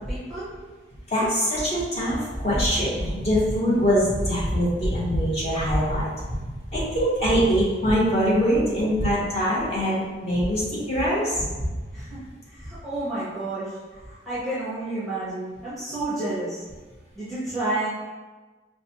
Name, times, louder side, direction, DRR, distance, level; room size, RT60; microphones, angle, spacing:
voice 1, 0.1-0.5 11.9-16.6 17.1-17.9, right 2 dB, ahead, -11 dB, 0.8 m, -31 dB
voice 2, 1.1-6.1 6.7-11.4, equal, 35° left, -7 dB, 1.2 m, -23 dB
4.9 x 2.2 x 2.8 m, 1.3 s
head